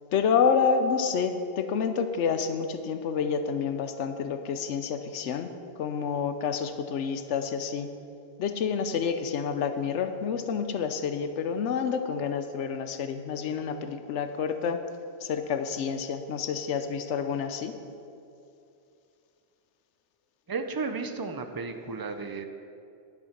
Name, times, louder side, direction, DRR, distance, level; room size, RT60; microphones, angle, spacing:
voice 1, 0.1-5.5 5.8-7.9 8.4-14.8 15.2-17.8, left 6 dB, 85° left, 8 dB, 1.0 m, -28 dB
voice 2, 20.5-22.5, right 4 dB, 30° right, 7 dB, 0.4 m, -33 dB
11.0 x 7.0 x 5.8 m, 2.6 s
omnidirectional pair, 1.2 m